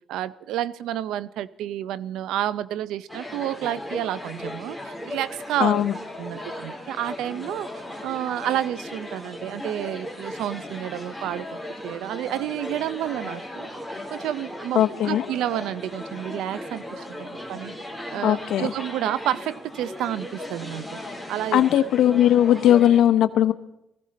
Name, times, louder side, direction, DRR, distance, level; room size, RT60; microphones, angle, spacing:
voice 1, 0.1-5.9 6.2-7.7 8.0-13.7 14.1-17.7 18.1-21.0 21.3-21.6, right 12 dB, 90° right, 17 dB, 0.5 m, -30 dB
sound 1, 3.1-23.0, left 1 dB, 10° right, 3.7 m, -37 dB
voice 2, 5.6-5.9 14.7-15.2 18.2-18.7 21.5-23.5, left 11 dB, 80° left, 10 dB, 0.9 m, -18 dB
20.0 x 15.5 x 4.2 m, 0.86 s
cardioid pair, 90°, 0 cm